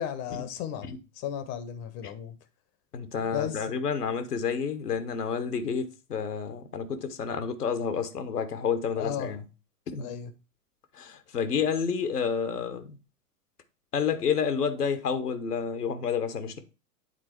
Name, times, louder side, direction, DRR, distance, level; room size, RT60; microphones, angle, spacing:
voice 1, 0.0-0.9 1.1-2.4 3.2-3.7 9.0-9.3 10.0-10.3, left 9 dB, 35° left, 0.9 m, -34 dB
voice 2, 2.9-9.4 9.9-10.1 11.0-13.0 13.9-16.6, left 6 dB, 75° left, 1.2 m, -30 dB
9.0 x 4.0 x 4.5 m
figure-of-eight pair, 95°, 47 cm